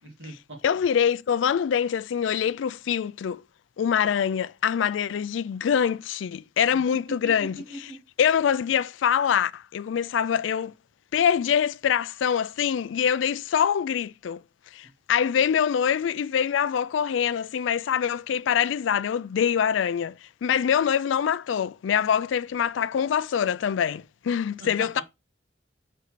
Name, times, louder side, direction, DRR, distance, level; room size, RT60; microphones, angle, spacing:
voice 1, 0.0-0.6 7.4-8.0 24.6-24.7 24.9-25.0, right 1 dB, 85° right, 2.6 m, -40 dB
voice 2, 0.6-3.4 3.8-7.6 8.2-10.7 11.1-14.4 14.7-25.0, left 8 dB, 85° left, 0.3 m, -24 dB
5.3 x 4.2 x 4.4 m
head